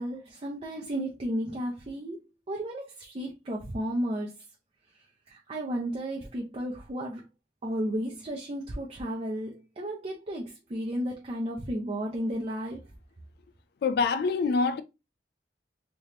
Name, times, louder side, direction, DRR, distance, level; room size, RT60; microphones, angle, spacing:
voice 1, 0.0-2.2 2.5-4.3 5.3-7.2 7.6-12.8, equal, 35° right, 0.5 m, -33 dB
voice 2, 13.8-14.8, left 4 dB, 65° left, 0.3 m, -25 dB
3.3 x 3.0 x 2.7 m
head